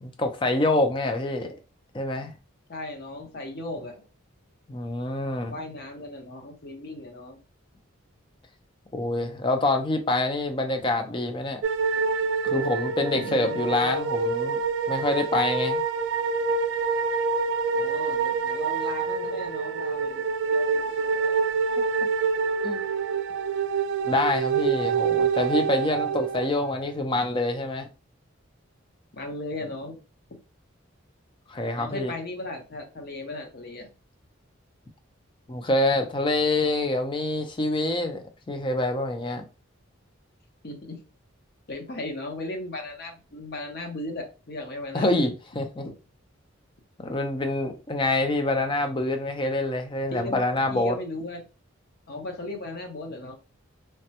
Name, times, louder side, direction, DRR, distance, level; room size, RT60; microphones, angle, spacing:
voice 1, 0.0-1.5 1.9-2.3 4.7-5.6 8.9-11.6 12.4-14.6 14.9-15.8 22.6-22.8 24.0-27.9 31.5-32.1 35.5-39.5 44.9-45.9 47.0-51.0, left 2 dB, 25° left, 0.4 m, -26 dB
voice 2, 2.7-4.0 5.5-7.4 12.4-12.5 13.1-13.9 17.7-21.5 29.1-30.0 31.8-33.9 40.6-41.0 41.7-45.3 50.1-50.4 50.7-51.4 52.1-53.4, left 2 dB, 50° left, 0.7 m, -37 dB
sound 1, 11.6-26.8, right 5 dB, 55° right, 0.3 m, -26 dB
3.3 x 2.1 x 2.8 m
head